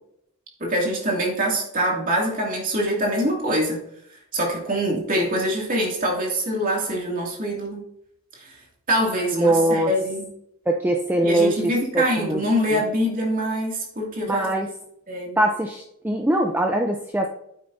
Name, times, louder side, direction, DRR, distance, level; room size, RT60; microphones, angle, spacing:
voice 1, 0.6-3.8 4.3-7.8 8.9-10.3 11.2-14.5 15.1-15.4, equal, 40° right, -2 dB, 2.5 m, -24 dB
voice 2, 9.3-9.9 10.7-12.4 12.7-12.8 14.3-14.7 15.4-17.3, right 1 dB, 10° right, 2 dB, 0.5 m, -22 dB
9.1 x 8.7 x 2.7 m, 0.76 s
head